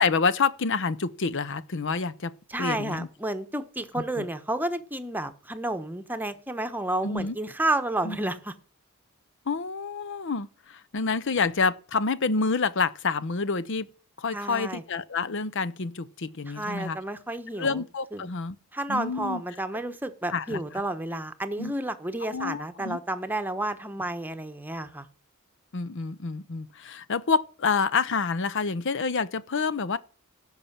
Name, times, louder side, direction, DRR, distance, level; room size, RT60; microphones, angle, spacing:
voice 1, 0.0-2.3 2.6-3.1 4.2-4.3 7.0-7.3 8.0-8.2 9.5-13.9 14.2-17.0 17.6-18.6 18.9-19.4 20.3-20.6 21.6-21.7 22.3-23.0 25.7-30.0, left 4 dB, 60° left, 0.7 m, -28 dB
voice 2, 2.5-8.5 14.3-14.8 16.5-17.8 18.1-18.3 18.7-25.1, right 1 dB, 10° right, 1.0 m, -31 dB
16.5 x 5.7 x 7.3 m
head